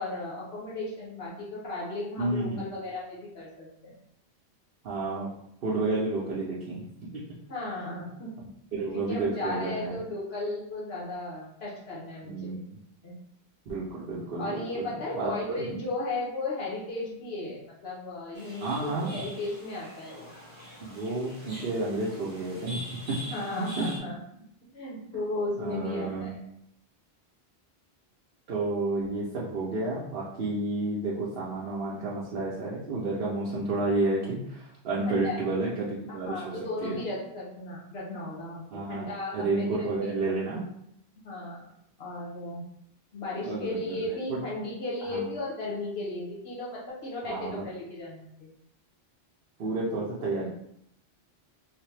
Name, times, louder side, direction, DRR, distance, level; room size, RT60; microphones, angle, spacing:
voice 1, 0.0-3.9 7.5-8.4 8.9-12.6 13.0-13.1 14.4-20.3 23.2-24.2 24.6-26.4 35.0-35.4 36.2-40.1 41.2-41.6 42.0-42.6 43.1-48.5, left 2 dB, 75° left, -5 dB, 1.2 m, -35 dB
voice 2, 2.2-2.6 4.8-5.3 5.6-7.4 8.0-8.1 8.4-10.0 12.2-12.8 13.7-15.6 18.6-19.2 20.8-22.8 23.1-23.2 23.5-23.9 25.1-25.2 25.6-26.3 28.5-36.5 36.8-37.0 38.7-40.7 43.4-44.4 45.1-45.2 47.2-47.6 49.6-50.5, right 2 dB, 65° right, -6 dB, 0.9 m, -31 dB
sound 1, 18.3-24.0, right 1 dB, 35° right, 0.5 m, -44 dB
3.2 x 2.1 x 3.2 m, 0.75 s
omnidirectional pair, 1.1 m